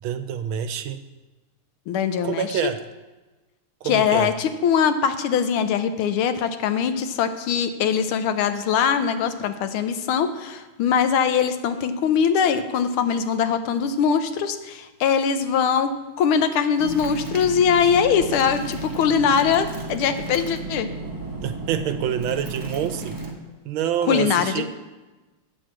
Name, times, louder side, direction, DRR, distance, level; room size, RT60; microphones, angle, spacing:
voice 1, 0.0-1.0 2.2-2.8 3.8-4.3 21.4-23.2 23.6-24.6, right 9 dB, 80° right, 10 dB, 1.4 m, -27 dB
voice 2, 1.9-2.6 3.8-20.9 24.0-24.6, left 7 dB, 85° left, 9 dB, 1.6 m, -22 dB
sound 1, 16.8-23.3, right 3 dB, 15° right, 0.7 m, -33 dB
10.0 x 4.8 x 7.5 m, 1.2 s
omnidirectional pair, 2.3 m